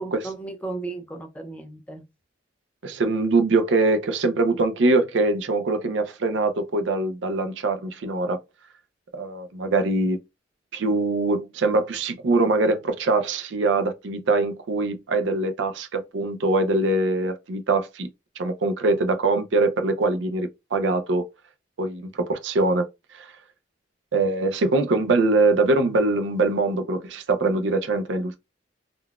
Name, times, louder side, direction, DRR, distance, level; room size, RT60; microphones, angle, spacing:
voice 1, 0.0-2.0, right 3 dB, 5° left, 0.6 m, -35 dB
voice 2, 2.8-8.4 9.1-10.2 10.7-18.1 18.4-21.3 21.8-22.9 23.1-23.3 24.1-28.4, right 2 dB, 70° right, 0.5 m, -23 dB
3.8 x 2.2 x 2.3 m
head